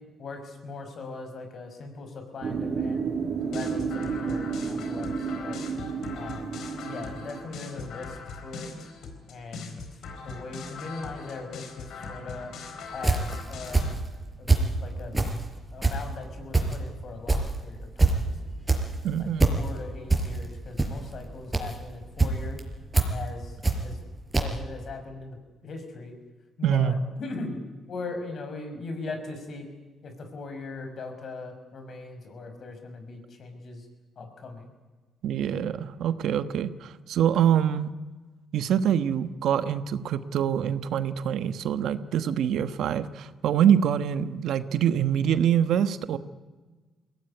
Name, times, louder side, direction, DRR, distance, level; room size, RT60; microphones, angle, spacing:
voice 1, 0.2-3.2 3.5-5.6 6.1-8.7 9.3-12.5 12.9-13.9 14.4-15.3 15.7-18.5 19.2-22.6 23.1-24.0 24.4-25.4 25.6-26.1 26.6-27.6 27.9-29.7 30.0-33.9 34.2-34.7, left 3 dB, 55° left, 6 dB, 5.9 m, -40 dB
sound 1, 2.4-7.4, right 5 dB, 50° right, 4.6 m, -31 dB
sound 2, 3.4-13.9, left 4 dB, 75° left, 4.3 m, -41 dB
sound 3, 12.9-14.7 15.1-24.1 24.3-24.4, right 3 dB, 20° right, 4.8 m, -24 dB
voice 2, 19.0-19.5 26.6-26.9 35.2-37.9 38.5-46.2, right 9 dB, 75° right, 12 dB, 1.2 m, -25 dB
21.5 x 17.5 x 9.8 m, 1.3 s
cardioid pair, 90°, 0 cm